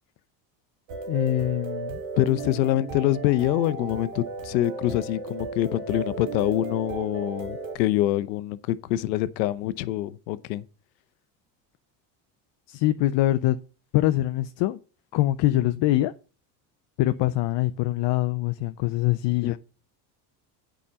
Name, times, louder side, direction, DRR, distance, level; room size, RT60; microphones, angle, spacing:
sound 1, 0.9-7.8, right 4 dB, 70° right, 2.8 m, -35 dB
voice 1, 1.1-2.0 12.7-13.6 13.9-14.8 15.1-16.1 17.0-19.6, left 16 dB, 55° left, 0.7 m, -24 dB
voice 2, 2.2-10.6 19.4-19.6, left 14 dB, 90° left, 0.8 m, -25 dB
8.4 x 5.1 x 6.8 m
supercardioid pair, 85°, 49 cm